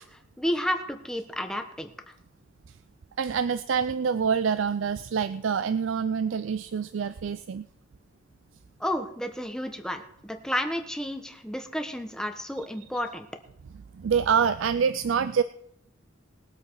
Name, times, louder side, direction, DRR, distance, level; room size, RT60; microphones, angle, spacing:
voice 1, 0.4-2.1 8.8-13.3, equal, 5° left, 5 dB, 1.1 m, -31 dB
voice 2, 3.2-7.7 13.9-15.4, right 6 dB, 85° right, 13 dB, 0.4 m, -26 dB
20.0 x 7.8 x 4.6 m, 0.74 s
head